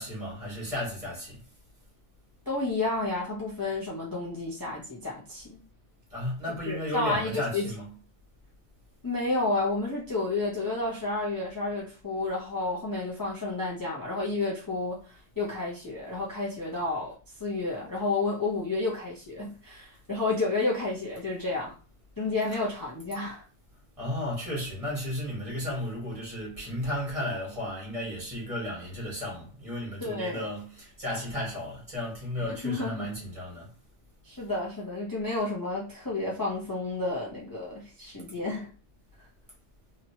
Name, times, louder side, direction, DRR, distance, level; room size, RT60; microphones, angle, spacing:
voice 1, 0.0-1.4 6.1-7.9 24.0-33.7, left 1 dB, 30° right, 1.6 m, -34 dB
voice 2, 2.5-5.6 6.7-7.6 9.0-17.1 17.4-21.7 22.2-23.4 30.0-30.5 32.6-33.1 34.2-38.7, left 2 dB, 20° left, 0.8 m, -31 dB
2.9 x 2.9 x 2.8 m
omnidirectional pair, 1.2 m